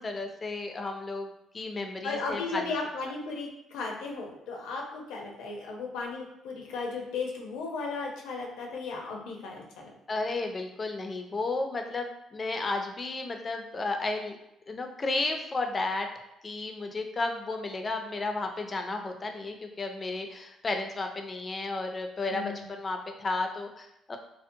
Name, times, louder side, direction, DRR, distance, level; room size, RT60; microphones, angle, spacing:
voice 1, 0.0-2.7 10.1-14.4 14.7-16.1 16.4-24.2, left 3 dB, 30° left, 5 dB, 0.4 m, -33 dB
voice 2, 2.0-9.9 22.3-22.7, left 4 dB, 85° left, 0 dB, 0.5 m, -35 dB
2.6 x 2.0 x 2.6 m, 0.85 s
cardioid pair, 85°, 0 cm